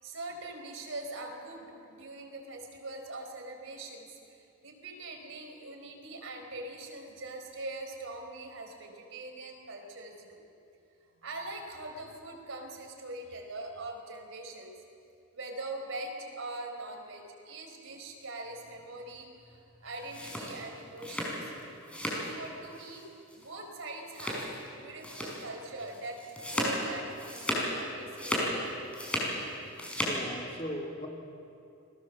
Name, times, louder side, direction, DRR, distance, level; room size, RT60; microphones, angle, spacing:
voice 1, 0.0-10.4 11.2-14.7 15.3-21.5 22.0-23.1 23.4-24.5 24.7-26.2 26.4-28.8, right 2 dB, 70° right, 3 dB, 4.4 m, -42 dB
sound 1, 19.9-22.3 22.6-23.0 23.3-23.4 24.1-24.7 25.0-25.4 25.8-27.8 28.1-29.4 29.6-30.2, equal, 5° left, 5.5 m, -34 dB
voice 2, 30.0-31.1, equal, 30° left, 1 dB, 2.9 m, -38 dB
28.5 x 21.5 x 7.5 m, 2.6 s
head